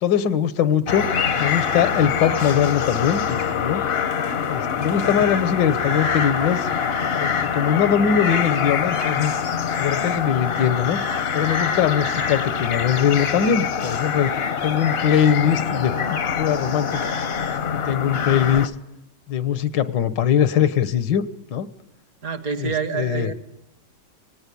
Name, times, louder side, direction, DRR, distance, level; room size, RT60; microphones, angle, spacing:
voice 1, 0.0-3.8 4.5-6.7 7.2-9.3 9.8-11.0 11.3-14.3 14.6-17.2 17.9-18.7 19.3-21.2 21.5-21.7 22.6-23.3, left 8 dB, 80° left, 15 dB, 1.7 m, -21 dB
sound 1, 0.9-18.7, left 7 dB, 45° left, 0.8 m, -24 dB
voice 2, 22.2-23.3, right 6 dB, 55° right, 12 dB, 1.7 m, -27 dB
18.5 x 17.5 x 8.5 m, 0.88 s
omnidirectional pair, 1.9 m